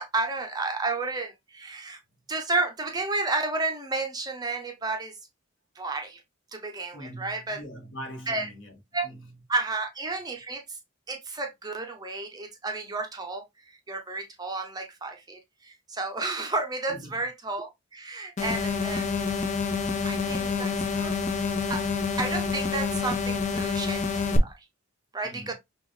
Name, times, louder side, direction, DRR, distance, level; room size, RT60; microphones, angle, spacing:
voice 1, 0.0-2.0 2.3-5.2 5.8-6.2 6.5-7.6 8.3-8.5 8.9-9.1 9.5-10.8 11.1-19.5 20.0-21.1 21.7-21.8 22.2-24.7 25.1-25.5, right 3 dB, 20° right, 0.6 m, -32 dB
voice 2, 6.9-9.3 16.9-17.2 25.2-25.5, equal, 60° left, 1.7 m, -42 dB
sound 1, 18.4-24.4, left 5 dB, 35° left, 0.6 m, -28 dB
5.3 x 2.5 x 3.1 m
head